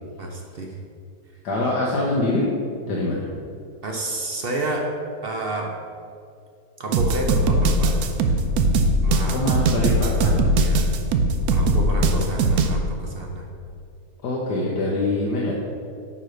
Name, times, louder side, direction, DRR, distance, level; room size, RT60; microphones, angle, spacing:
voice 1, 0.2-0.8 3.8-5.8 6.8-8.0 9.0-9.4 10.6-10.9 11.5-13.5, right 2 dB, 55° right, 1 dB, 0.6 m, -29 dB
voice 2, 1.4-2.5 2.9-3.3 9.3-10.4 14.2-15.5, left 2 dB, 70° left, -4 dB, 1.5 m, -24 dB
sound 1, 6.9-12.8, right 2 dB, 70° right, 1.0 m, -20 dB
9.6 x 3.2 x 6.4 m, 2.3 s
omnidirectional pair, 1.9 m